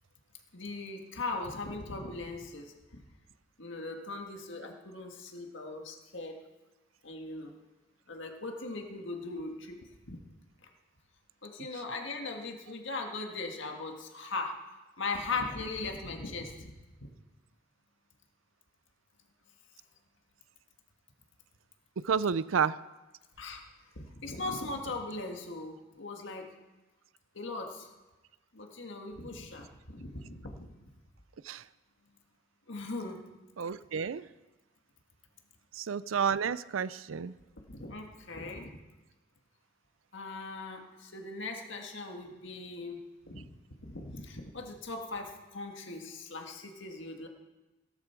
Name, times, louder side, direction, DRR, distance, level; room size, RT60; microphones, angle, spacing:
voice 1, 0.5-3.0 3.6-6.4 7.0-7.5 8.1-9.8 10.0-10.2 10.6-10.7 11.4-14.6 15.0-16.7 17.0-17.1 23.4-23.6 24.0-26.5 27.3-27.9 28.5-30.7 32.7-33.2 37.7-38.8 40.1-43.0 43.3-43.5 43.9-47.3, left 3 dB, 65° left, 2 dB, 1.8 m, -39 dB
voice 2, 22.0-22.8 31.4-31.6 33.6-34.2 35.7-37.4, right 6 dB, 85° right, 17 dB, 0.5 m, -30 dB
17.0 x 13.0 x 4.6 m, 1.1 s
head